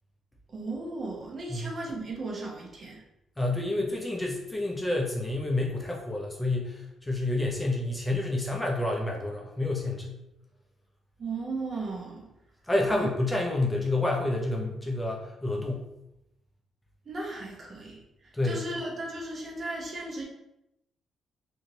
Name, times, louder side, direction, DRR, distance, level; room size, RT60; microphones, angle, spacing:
voice 1, 0.5-3.0 11.2-12.3 12.9-13.1 17.1-18.0 18.4-20.2, right 2 dB, 40° right, -2 dB, 0.8 m, -36 dB
voice 2, 3.4-10.2 12.6-15.9 18.3-18.6, left 2 dB, 10° left, -1 dB, 0.6 m, -29 dB
2.9 x 2.7 x 2.7 m, 0.87 s
cardioid pair, 90°, 0 cm